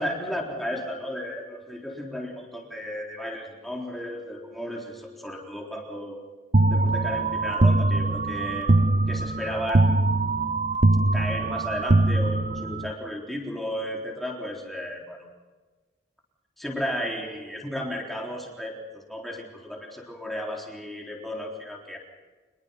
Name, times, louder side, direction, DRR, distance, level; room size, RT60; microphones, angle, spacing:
voice 1, 0.0-6.2 6.7-8.7 9.1-10.0 11.1-15.2 16.6-22.0, equal, ahead, -1 dB, 3.8 m, -34 dB
sound 1, 6.5-12.9, right 2 dB, 40° right, 0.7 m, -22 dB
24.5 x 21.5 x 5.8 m, 1.4 s
head